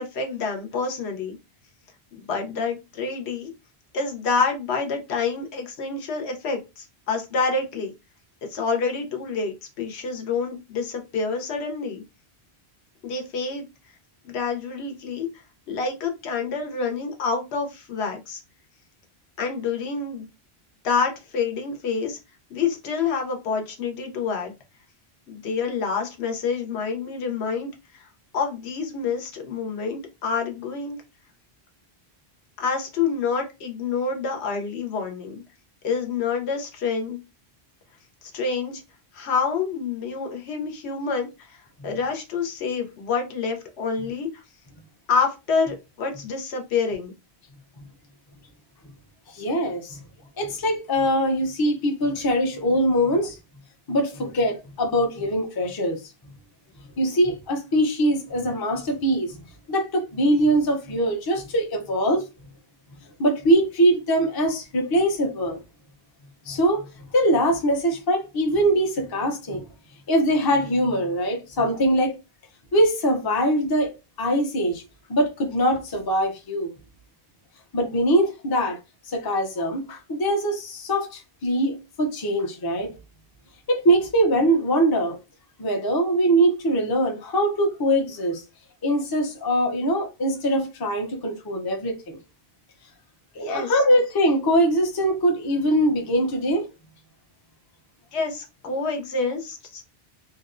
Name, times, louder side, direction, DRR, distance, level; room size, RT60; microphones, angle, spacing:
voice 1, 0.0-1.4 2.1-3.5 3.9-7.9 8.5-12.0 13.0-13.7 14.2-18.4 19.4-20.3 20.8-22.2 22.5-24.5 25.3-28.1 28.3-31.0 32.6-35.4 35.8-37.2 38.3-38.8 39.1-41.6 41.8-44.4 45.1-47.1 79.2-79.3 93.4-93.7 98.1-99.8, left 5 dB, 80° left, 0.9 m, -27 dB
voice 2, 49.3-50.0 50.4-53.4 53.9-56.0 57.0-59.4 59.7-62.2 63.2-65.6 66.5-66.9 67.1-69.6 70.1-72.2 72.7-73.9 74.2-74.8 75.1-76.7 77.7-78.8 79.1-82.9 83.7-85.2 85.6-88.4 88.8-92.2 93.4-96.7, right 1 dB, 35° left, 0.4 m, -22 dB
2.7 x 2.0 x 2.4 m
omnidirectional pair, 1.1 m